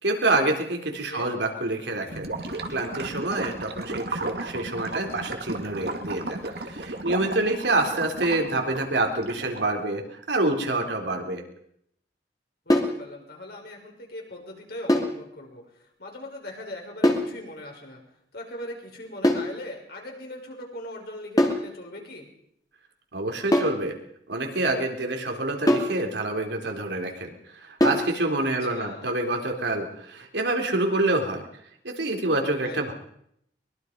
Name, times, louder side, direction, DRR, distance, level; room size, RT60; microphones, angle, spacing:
voice 1, 0.0-2.3 2.7-11.4 23.1-23.9 24.3-31.4 31.8-32.9, right 2 dB, 80° right, 3 dB, 3.8 m, -27 dB
Gurgling / Liquid, 2.1-9.8, right 2 dB, 65° right, 2.5 m, -34 dB
voice 2, 12.6-18.0 18.3-22.3 28.7-29.1 32.6-32.9, left 1 dB, 60° left, 1 dB, 6.2 m, -40 dB
sound 1, 12.7-13.0 14.9-15.2 17.0-17.3 19.2-19.5 21.4-21.7 23.5-23.8 25.7-26.0 27.8-28.1, left 1 dB, 20° left, 2.6 m, -22 dB
23.5 x 22.0 x 5.4 m, 0.73 s
head